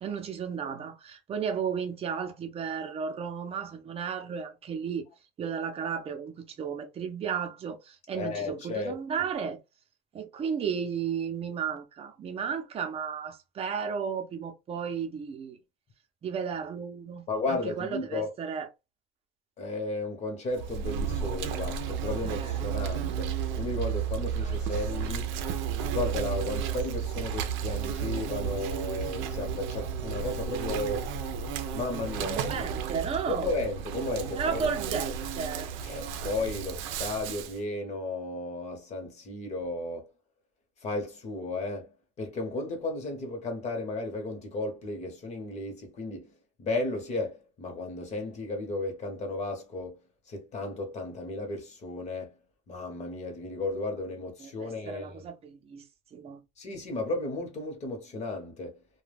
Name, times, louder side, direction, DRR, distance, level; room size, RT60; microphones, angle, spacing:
voice 1, 0.0-5.0 5.4-9.6 10.1-15.6 16.2-18.7 22.2-22.6 24.4-24.5 32.2-33.5 34.4-35.7 54.4-55.8 56.1-56.4, right 6 dB, 30° right, 0.6 m, -34 dB
voice 2, 8.2-9.0 17.3-18.3 19.6-25.3 25.9-31.1 31.7-32.6 33.3-34.7 35.8-40.1 40.8-46.3 46.6-50.0 50.3-52.3 52.7-55.3 56.6-58.8, left 2 dB, 35° left, 1.0 m, -34 dB
Insect, 20.5-37.6, right 7 dB, 85° right, 0.5 m, -33 dB
2.2 x 2.2 x 3.3 m
cardioid pair, 145°, 19 cm